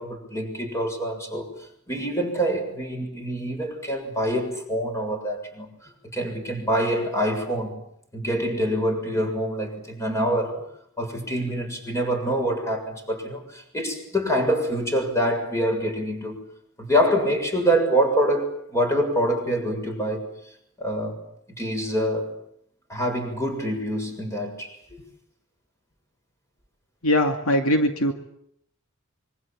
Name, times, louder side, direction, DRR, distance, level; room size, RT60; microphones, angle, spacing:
voice 1, 0.0-1.5 1.9-7.8 8.1-10.6 11.0-16.4 16.8-20.3 20.8-21.3 21.6-22.3 22.9-24.7, equal, 15° left, 6.9 m, -25 dB
voice 2, 27.0-28.1, left 1 dB, 70° left, 2.5 m, -21 dB
25.5 x 24.5 x 8.8 m
head